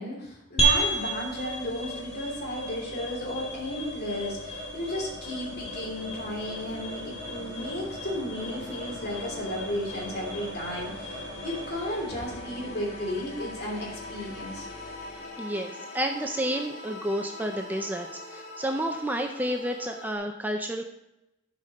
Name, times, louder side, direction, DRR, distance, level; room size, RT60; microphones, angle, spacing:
voice 1, 0.0-14.7, left 1 dB, 55° left, -2 dB, 2.9 m, -34 dB
sound 1, 0.6-15.2, right 2 dB, 35° left, 1.7 m, -34 dB
sound 2, 2.1-20.2, left 2 dB, 75° left, 1.7 m, -43 dB
voice 2, 15.4-20.8, equal, 10° right, 3 dB, 0.5 m, -30 dB
12.0 x 5.1 x 4.2 m, 0.91 s
head